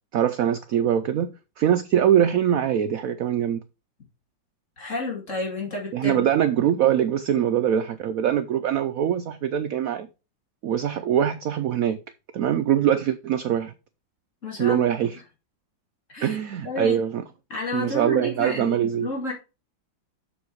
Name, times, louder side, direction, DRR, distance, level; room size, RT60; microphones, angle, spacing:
voice 1, 0.1-1.3 1.6-3.6 5.9-10.1 10.6-12.0 12.3-13.7 14.6-15.2 16.2-17.2 17.7-19.1, right 10 dB, 85° right, 0.7 m, -23 dB
voice 2, 4.8-6.2 14.4-14.9 16.1-16.4 16.6-17.0 17.5-19.3, left 2 dB, 40° left, 2.8 m, -31 dB
7.2 x 6.5 x 4.6 m
omnidirectional pair, 2.1 m